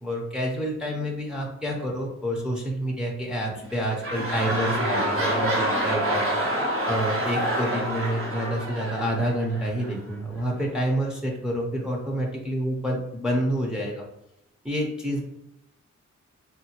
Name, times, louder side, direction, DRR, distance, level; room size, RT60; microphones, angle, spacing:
voice 1, 0.0-14.0 14.6-15.2, equal, 5° right, -1 dB, 0.5 m, -28 dB
sound 1, 3.6-9.9 10.6-10.7, right 1 dB, 45° right, 0.8 m, -27 dB
3.8 x 2.1 x 2.8 m, 0.83 s
wide cardioid pair, 165°, 30 cm